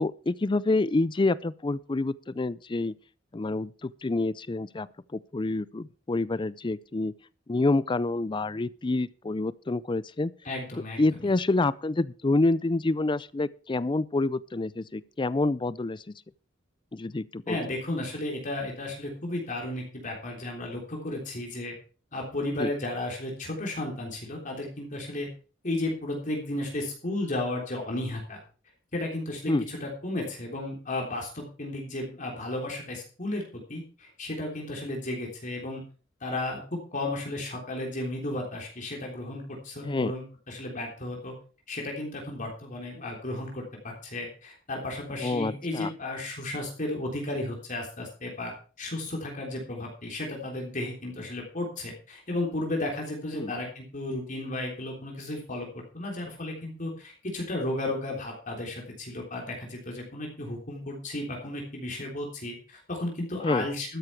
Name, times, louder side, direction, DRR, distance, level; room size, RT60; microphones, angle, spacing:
voice 1, 0.0-2.9 3.3-7.1 7.5-10.3 11.0-16.1 16.9-17.6 22.6-22.7 29.5-29.7 39.8-40.1 45.1-45.9 53.3-53.5 63.4-63.7, left 2 dB, 25° left, 0.5 m, -27 dB
voice 2, 10.4-11.0 17.5-21.7 22.1-25.3 25.6-28.4 28.9-35.8 36.2-41.3 41.7-48.5 48.8-64.0, left 1 dB, 45° left, 3.5 m, -34 dB
12.5 x 9.7 x 4.6 m
head